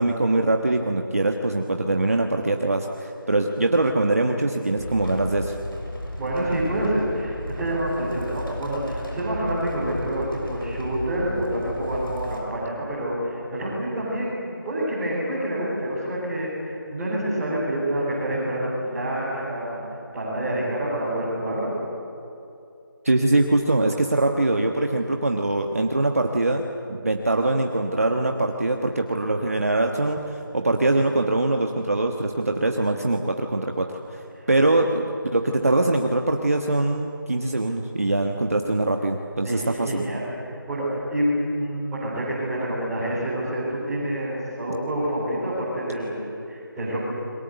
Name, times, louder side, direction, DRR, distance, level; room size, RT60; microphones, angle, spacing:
voice 1, 0.0-5.6 23.0-26.6 26.9-34.2 34.5-40.0, right 2 dB, 40° right, 3 dB, 1.3 m, -23 dB
sound 1, 4.8-12.4, left 1 dB, 75° left, 6.6 m, -34 dB
voice 2, 6.2-19.8 20.1-21.7 34.3-34.5 39.4-47.0, right 1 dB, 5° right, -12 dB, 4.1 m, -27 dB
30.0 x 22.5 x 8.0 m, 2.6 s
figure-of-eight pair, 180°, 12 cm